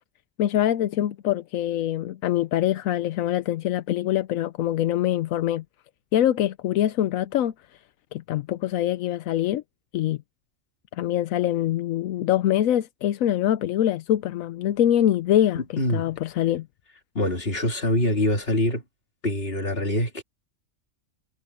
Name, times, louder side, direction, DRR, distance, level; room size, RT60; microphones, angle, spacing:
voice 1, 0.4-5.6 6.1-7.5 8.1-9.6 9.9-10.2 10.9-15.6 15.9-16.7, left 12 dB, 85° left, 1.0 m, -24 dB
voice 2, 15.5-16.1 17.1-18.8 19.2-20.2, left 1 dB, 45° left, 3.0 m, -24 dB
omnidirectional pair, 1.4 m